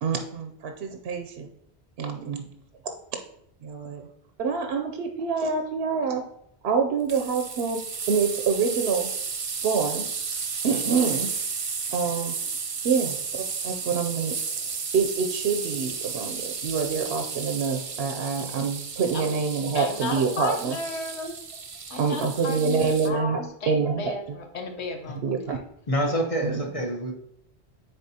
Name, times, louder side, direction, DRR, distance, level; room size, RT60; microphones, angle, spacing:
voice 1, 0.0-1.5 2.0-2.5 2.8-2.9 3.6-4.1 4.4-6.2 6.6-7.8 8.1-9.1 9.6-10.1 10.6-11.3 11.9-12.4 12.8-14.4 14.9-20.8 21.2-21.3 22.0-24.4 25.1-25.6 26.4-26.6, right 5 dB, 75° right, 4 dB, 0.8 m, -26 dB
sound 1, 7.1-23.1, right 5 dB, 40° right, 0.5 m, -33 dB
voice 2, 19.7-21.3 21.9-25.6, left 3 dB, 85° left, 4 dB, 1.1 m, -34 dB
voice 3, 25.9-27.1, equal, 35° left, 1 dB, 0.9 m, -26 dB
9.7 x 4.0 x 2.8 m, 0.75 s
omnidirectional pair, 1.1 m